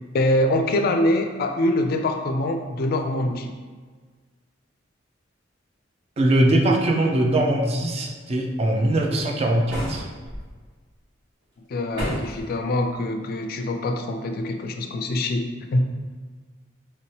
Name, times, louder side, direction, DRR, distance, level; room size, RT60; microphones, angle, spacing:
voice 1, 0.1-3.5 11.7-15.8, left 1 dB, 50° left, 5 dB, 0.3 m, -24 dB
voice 2, 6.2-10.0, right 1 dB, 35° right, 2 dB, 0.4 m, -21 dB
sound 1, 9.7-10.4 11.9-12.5, equal, 70° right, 1.4 m, -30 dB
3.1 x 2.8 x 3.0 m, 1.4 s
head